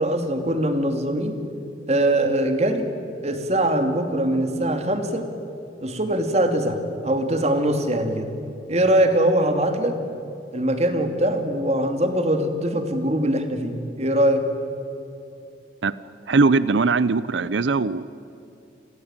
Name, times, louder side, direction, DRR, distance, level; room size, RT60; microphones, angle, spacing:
voice 1, 0.0-1.4 1.9-2.9 3.2-5.3 5.8-8.3 8.7-10.0 10.5-14.4, right 1 dB, 35° right, 7 dB, 2.6 m, -22 dB
voice 2, 16.3-18.1, right 4 dB, 90° right, 16 dB, 0.7 m, -20 dB
29.5 x 21.0 x 9.0 m, 2.8 s
head